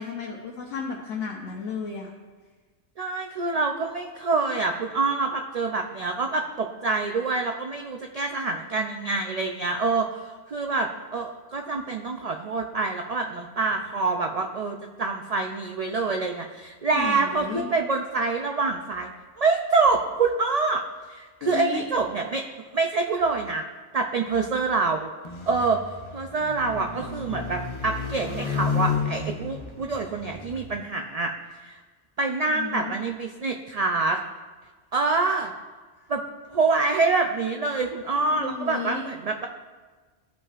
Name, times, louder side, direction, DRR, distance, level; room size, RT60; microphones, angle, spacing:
voice 1, 0.0-2.1 16.9-17.7 21.4-21.8 32.5-33.0 38.3-39.1, left 5 dB, 80° left, -2 dB, 1.1 m, -33 dB
voice 2, 3.0-19.1 19.4-20.8 21.1-22.4 22.7-23.6 23.9-25.1 25.5-31.3 31.6-31.8 32.2-34.2 34.9-35.5 36.1-36.2 36.5-39.5, right 3 dB, 80° right, 3 dB, 0.3 m, -26 dB
sound 1, 25.2-30.7, left 6 dB, 40° left, 0.4 m, -32 dB
14.0 x 5.4 x 2.4 m, 1.4 s
omnidirectional pair, 1.2 m